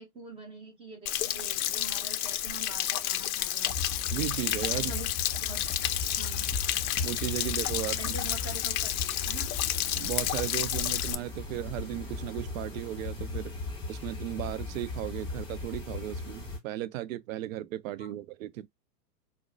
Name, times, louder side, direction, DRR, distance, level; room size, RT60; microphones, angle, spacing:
voice 1, 0.0-3.7 4.7-5.1 5.4-5.6 6.2-6.5 8.0-9.5 18.0-18.2, right 3 dB, 10° right, 0.8 m, -44 dB
Stream / Splash splatter / Trickle dribble, 1.1-11.1, left 12 dB, 60° left, 0.5 m, -31 dB
sound 1, 3.7-16.6, left 3 dB, 10° left, 1.4 m, -37 dB
voice 2, 4.1-4.9 7.0-8.2 10.0-13.6 13.9-18.7, right 14 dB, 55° right, 0.5 m, -35 dB
4.6 x 2.1 x 2.5 m
hypercardioid pair, 120°, 49 cm